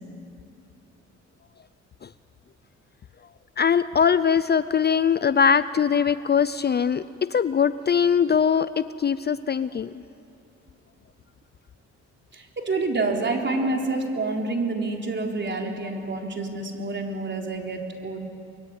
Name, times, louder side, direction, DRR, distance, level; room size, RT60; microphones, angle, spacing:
voice 1, 3.6-9.9, left 7 dB, 35° left, 15 dB, 0.5 m, -21 dB
voice 2, 12.3-18.2, right 3 dB, 35° right, 1 dB, 3.9 m, -28 dB
24.5 x 22.0 x 9.7 m, 2.8 s
cardioid pair, 90°, 30 cm